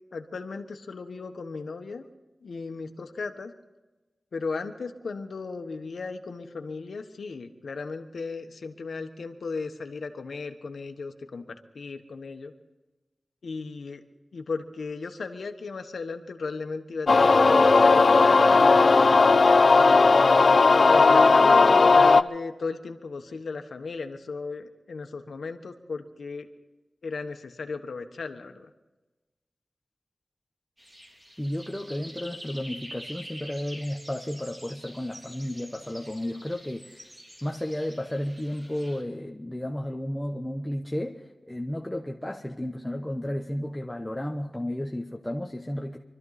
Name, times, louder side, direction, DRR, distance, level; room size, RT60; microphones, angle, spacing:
voice 1, 0.1-2.1 2.4-3.5 4.3-12.5 13.4-14.0 14.3-20.1 20.9-26.5 27.0-28.7, left 4 dB, 85° left, 6 dB, 1.3 m, -36 dB
sound 1, 17.1-22.2, left 4 dB, 55° left, 0.5 m, -17 dB
sound 2, 30.8-39.0, equal, 25° right, 3.8 m, -46 dB
voice 2, 31.4-37.1 37.4-46.0, left 1 dB, 10° left, 2 dB, 0.9 m, -33 dB
24.5 x 13.5 x 4.1 m, 1.1 s
wide cardioid pair, 100°, 0 cm